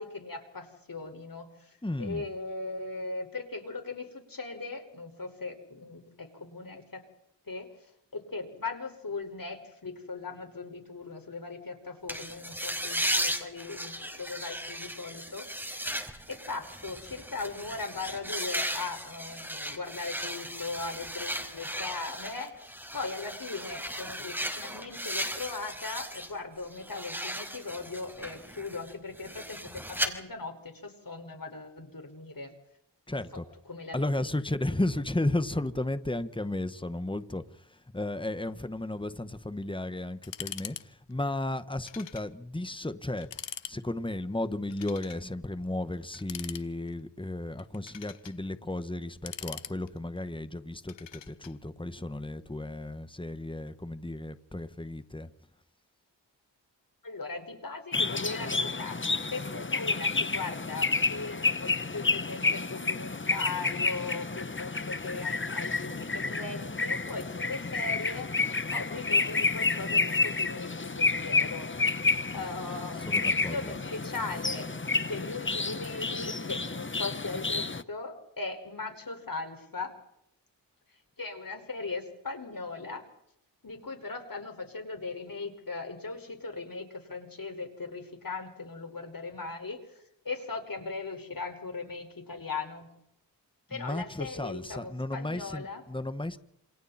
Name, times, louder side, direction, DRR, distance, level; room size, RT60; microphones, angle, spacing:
voice 1, 0.0-7.0 7.5-7.7 8.1-15.4 15.9-22.6 22.9-32.5 33.1-33.2 33.7-34.3 57.0-59.0 59.3-68.3 68.7-71.7 72.3-74.7 75.0-79.9 81.2-83.0 83.6-92.9 93.7-95.8, left 3 dB, 50° left, 5.8 m, -39 dB
voice 2, 1.8-2.2 33.1-33.4 33.9-37.4 37.7-43.3 43.7-55.3 73.0-73.7 93.7-96.4, left 1 dB, 10° left, 1.7 m, -34 dB
sound 1, 12.1-26.3 26.6-30.1, equal, 5° right, 5.1 m, -36 dB
sound 2, 40.2-40.9 41.1-41.2 41.8-42.3 42.7-42.8 43.2-43.8 44.7-45.2 46.1-47.0 47.6-48.4 49.0-50.2 50.9-51.5, left 9 dB, 85° left, 1.2 m, -42 dB
sound 3, 57.9-77.8, left 3 dB, 25° left, 1.3 m, -30 dB
28.5 x 27.5 x 4.5 m
cardioid pair, 45°, 43 cm